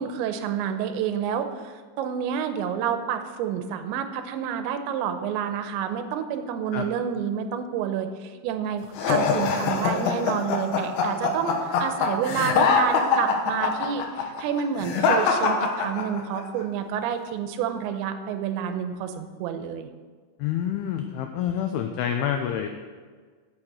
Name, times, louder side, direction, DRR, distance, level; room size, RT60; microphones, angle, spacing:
voice 1, 0.0-19.9, right 8 dB, 85° right, 8 dB, 3.0 m, -29 dB
sound 1, 9.0-16.4, left 5 dB, 70° left, 2.6 m, -23 dB
voice 2, 20.4-22.7, left 9 dB, 85° left, 5 dB, 2.2 m, -27 dB
8.8 x 6.6 x 7.8 m, 1.5 s
omnidirectional pair, 5.2 m